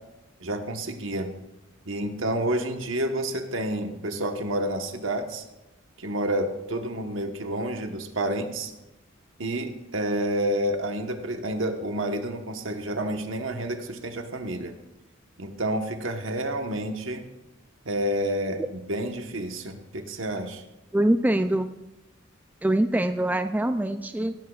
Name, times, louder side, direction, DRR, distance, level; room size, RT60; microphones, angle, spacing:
voice 1, 0.4-1.3 1.8-5.4 6.0-8.7 9.4-14.7 15.4-17.2 17.8-20.6, right 1 dB, 70° right, 5 dB, 1.2 m, -29 dB
voice 2, 20.9-21.7 22.6-24.4, right 1 dB, 10° right, 8 dB, 0.3 m, -24 dB
17.0 x 14.5 x 2.4 m, 0.97 s
head